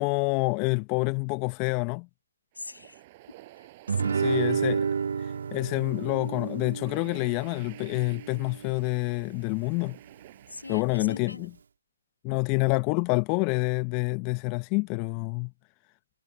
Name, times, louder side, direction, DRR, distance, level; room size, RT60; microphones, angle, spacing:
voice 1, 0.0-2.1 4.2-4.8 5.5-10.0 10.7-11.3 12.2-15.5, left 34 dB, 25° left, 0.9 m, -27 dB
voice 2, 2.5-3.0 3.6-5.3 10.5-11.5 12.3-12.4, left 2 dB, 80° left, 7.9 m, -43 dB
sound 1, 2.5-10.8, right 18 dB, 30° right, 5.7 m, -53 dB
Guitar, 3.9-8.9, right 6 dB, 55° right, 2.2 m, -31 dB
figure-of-eight pair, 140°, 0 cm